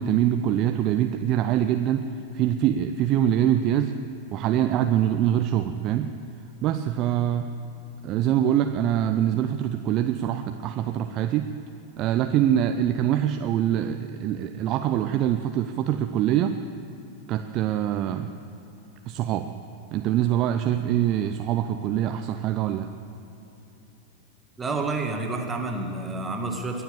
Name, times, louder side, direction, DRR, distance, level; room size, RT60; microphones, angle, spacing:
voice 1, 0.0-2.1 2.3-3.9 4.3-6.1 6.6-7.5 8.0-11.5 12.0-16.6 17.3-18.3 19.1-19.5 19.9-22.9, right 11 dB, 35° right, 7 dB, 0.6 m, -24 dB
voice 2, 24.6-26.8, right 3 dB, 15° right, 2 dB, 1.9 m, -29 dB
22.0 x 8.0 x 7.2 m, 3.0 s
figure-of-eight pair, 90°, 0 cm